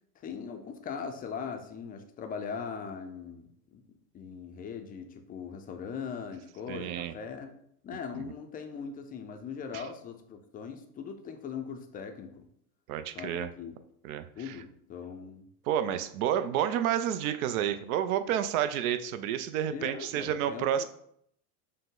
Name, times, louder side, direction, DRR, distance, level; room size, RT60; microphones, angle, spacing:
voice 1, 0.2-7.5 7.8-12.5 13.1-13.8 14.4-15.5 19.7-20.8, left 6 dB, 20° left, 6 dB, 0.4 m, -40 dB
voice 2, 6.7-7.1 8.1-8.2 9.7-9.8 12.9-13.5 14.0-14.5 15.7-20.8, right 10 dB, 70° right, 11 dB, 0.5 m, -30 dB
5.5 x 2.1 x 3.7 m, 0.70 s
supercardioid pair, 110°, 45 cm